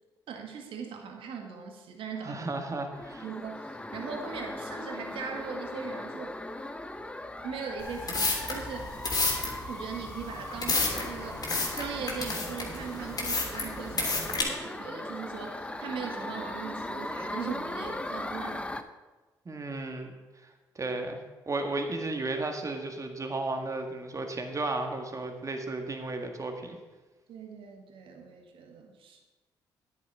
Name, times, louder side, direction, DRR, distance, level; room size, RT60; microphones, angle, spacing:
voice 1, 0.3-2.5 3.2-6.4 7.4-8.9 9.7-18.7 27.3-29.2, right 6 dB, 70° right, 3 dB, 1.7 m, -39 dB
voice 2, 2.2-3.2 19.5-20.1 20.8-21.2 21.5-26.8, right 2 dB, 35° right, 5 dB, 1.9 m, -34 dB
sound 1, 2.9-18.8, left 1 dB, 10° left, 0.8 m, -39 dB
sound 2, 7.8-14.4, left 3 dB, 45° left, 3.1 m, -31 dB
9.7 x 9.4 x 4.8 m, 1.2 s
hypercardioid pair, 50°, 9 cm